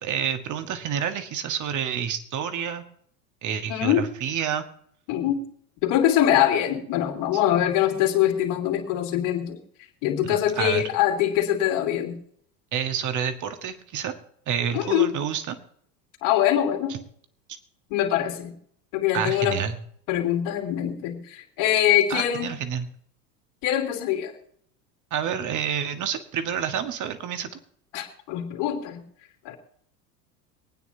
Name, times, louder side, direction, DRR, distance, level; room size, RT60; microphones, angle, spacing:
voice 1, 0.0-2.8 3.4-4.6 10.6-10.8 12.7-14.1 14.5-15.6 19.1-19.8 22.1-22.9 25.1-27.6, right 8 dB, 35° right, 8 dB, 1.7 m, -28 dB
voice 2, 3.7-4.1 5.1-5.4 5.8-9.6 10.0-12.2 14.7-15.1 16.2-17.0 17.9-18.5 18.9-19.6 20.1-22.5 23.6-24.3 27.9-29.0 29.4-29.6, left 11 dB, 55° left, 1 dB, 3.0 m, -23 dB
24.0 x 9.4 x 2.8 m, 0.64 s
hypercardioid pair, 90°, 49 cm